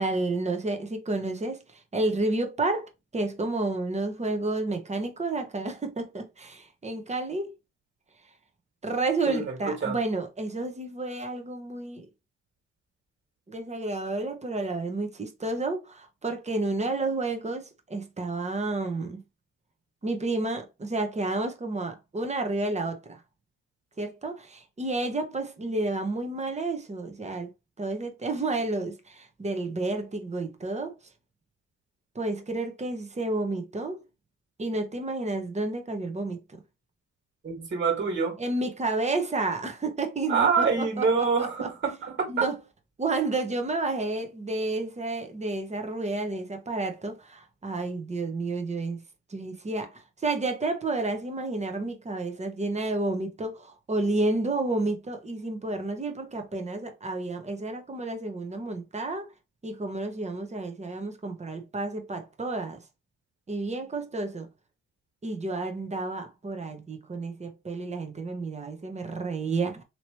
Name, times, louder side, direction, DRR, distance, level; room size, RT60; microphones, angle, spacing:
voice 1, 0.0-1.6 1.9-7.5 8.8-12.0 13.5-19.2 20.0-23.2 24.0-27.5 27.8-30.9 32.1-34.0 34.6-36.4 38.4-41.1 41.4-41.5 42.3-42.6 43.0-49.0 49.3-59.3 59.6-62.8 63.5-64.5 65.2-69.8, right 2 dB, 20° right, 1.0 m, -30 dB
voice 2, 9.3-10.0 37.4-38.4 40.3-42.5, right 5 dB, 40° right, 2.0 m, -26 dB
2.9 x 2.9 x 3.0 m
cardioid pair, 90°, 30 cm